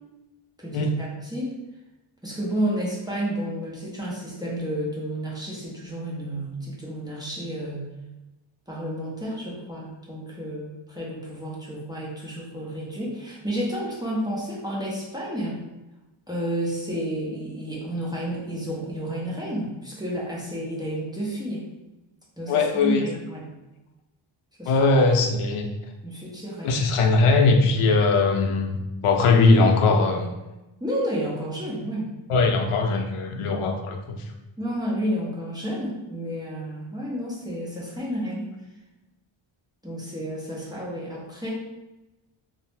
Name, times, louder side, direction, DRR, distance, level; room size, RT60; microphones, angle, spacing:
voice 1, 0.6-1.6 2.2-7.9 8.7-15.6 16.3-21.6 22.4-23.5 24.6-24.8 26.0-26.8 30.8-32.1 34.6-38.5 39.8-41.5, equal, 10° right, -6 dB, 0.5 m, -31 dB
voice 2, 22.5-23.1 24.7-25.7 26.6-28.8 29.0-30.3 32.3-34.2, left 3 dB, 85° left, 2 dB, 0.6 m, -20 dB
2.7 x 2.0 x 3.2 m, 1.0 s
wide cardioid pair, 145°, 49 cm